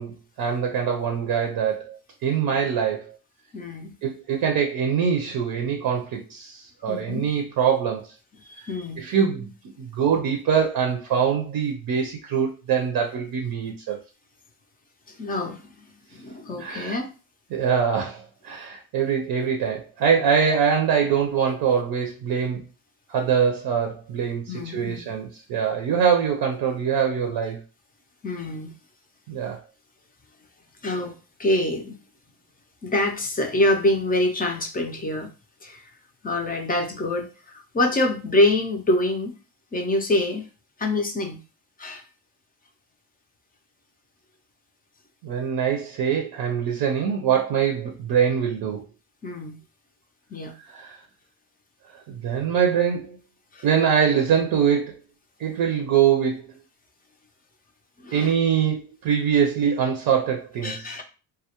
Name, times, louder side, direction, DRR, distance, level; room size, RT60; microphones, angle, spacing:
voice 1, 0.0-3.2 4.0-8.1 8.6-8.7 9.0-9.5 9.8-14.0 16.6-17.0 17.5-22.6 23.1-27.6 29.3-29.6 45.2-48.8 50.6-51.0 52.1-53.2 53.6-55.0 55.4-56.5 58.1-61.0, right 7 dB, 65° right, 3 dB, 0.6 m, -23 dB
voice 2, 3.5-3.9 6.9-7.3 8.6-9.0 15.1-15.7 16.1-17.1 24.5-25.0 28.2-28.7 30.8-31.1 31.4-32.0 32.8-35.3 35.6-35.8 36.2-39.3 39.7-40.5 40.8-41.4 41.8-42.0 49.2-49.6 50.3-50.5 53.5-53.7 58.0-58.3 60.6-61.0, left 1 dB, 25° left, 4 dB, 0.4 m, -25 dB
2.2 x 2.0 x 2.8 m, 0.32 s
cardioid pair, 130°, 40 cm